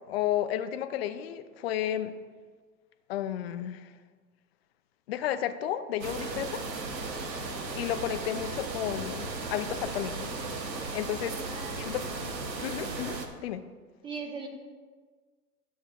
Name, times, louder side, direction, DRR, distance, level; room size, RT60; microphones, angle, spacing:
voice 1, 0.1-2.1 3.1-3.9 5.1-6.6 7.7-10.3 10.9-11.4 11.8-12.0 12.6-13.6, left 11 dB, 40° left, 10 dB, 0.5 m, -32 dB
sound 1, 6.0-13.3, right 3 dB, 85° right, 1.1 m, -36 dB
voice 2, 11.4-11.9 14.0-14.5, right 5 dB, 10° right, 3 dB, 0.7 m, -39 dB
12.0 x 7.2 x 2.4 m, 1.5 s
hypercardioid pair, 115°, 49 cm